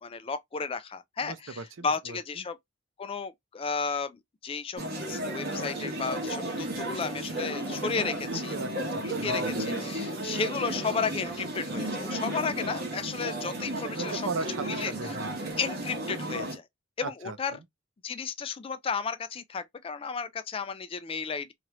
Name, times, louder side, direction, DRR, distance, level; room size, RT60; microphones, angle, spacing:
voice 1, 0.0-2.6 3.0-8.5 9.2-14.2 14.7-14.9 15.6-16.6 17.0-17.5 18.0-21.5, left 5 dB, 30° left, 0.3 m, -33 dB
voice 2, 1.2-2.4 8.2-9.7 13.7-15.6 17.0-17.6, right 4 dB, 85° right, 0.5 m, -38 dB
sound 1, 4.8-16.6, right 1 dB, 55° right, 1.1 m, -33 dB
3.0 x 2.5 x 2.9 m
head